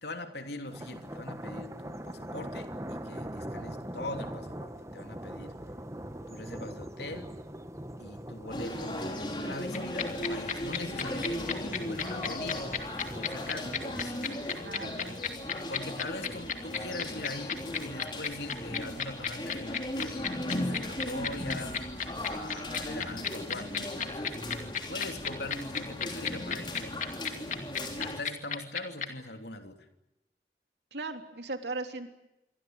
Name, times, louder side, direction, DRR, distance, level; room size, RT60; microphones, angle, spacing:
voice 1, 0.0-5.6 6.3-7.4 8.0-12.7 13.1-14.5 15.5-21.8 22.3-24.4 24.9-27.0 28.0-29.9, left 2 dB, 75° left, 6 dB, 3.1 m, -42 dB
sound 1, 0.7-14.1, right 1 dB, 15° right, 1.5 m, -42 dB
sound 2, 8.5-28.2, left 1 dB, 25° left, 4.8 m, -37 dB
sound 3, 9.7-29.1, left 7 dB, 45° left, 2.5 m, -32 dB
voice 2, 14.6-15.2 30.9-32.1, right 3 dB, 80° right, 5 dB, 3.4 m, -37 dB
27.5 x 24.0 x 7.9 m, 0.91 s
head